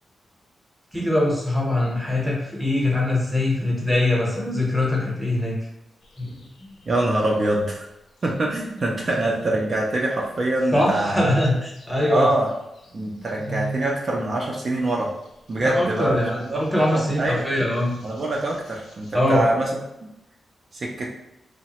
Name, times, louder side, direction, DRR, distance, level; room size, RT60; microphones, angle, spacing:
voice 1, 0.9-5.6 6.2-6.4 10.7-12.3 15.6-18.0 19.1-19.5, left 1 dB, ahead, -3 dB, 0.8 m, -22 dB
sound 1, 6.0-7.5 8.5-10.2 10.6-14.0 14.3-14.4 15.0-19.4, right 3 dB, 90° left, 0.8 m, -39 dB
voice 2, 6.9-7.8 8.2-11.2 12.1-12.5 12.9-15.1 15.5-16.6 16.9-17.4 18.0-19.7 20.7-21.1, right 2 dB, 45° right, -2 dB, 0.4 m, -24 dB
3.0 x 2.1 x 2.8 m, 0.86 s
wide cardioid pair, 110°, 0 cm